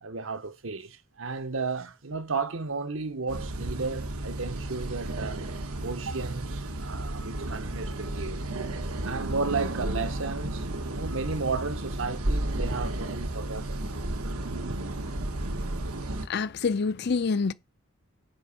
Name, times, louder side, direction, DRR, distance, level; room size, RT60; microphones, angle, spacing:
voice 1, 0.0-5.4 5.8-8.7 9.0-13.8 14.4-14.8, right 4 dB, 65° right, 0.9 m, -34 dB
sound 1, 3.3-16.3, right 1 dB, 85° right, 1.3 m, -33 dB
voice 2, 16.3-17.5, left 4 dB, 50° left, 0.5 m, -26 dB
10.5 x 5.2 x 7.0 m
head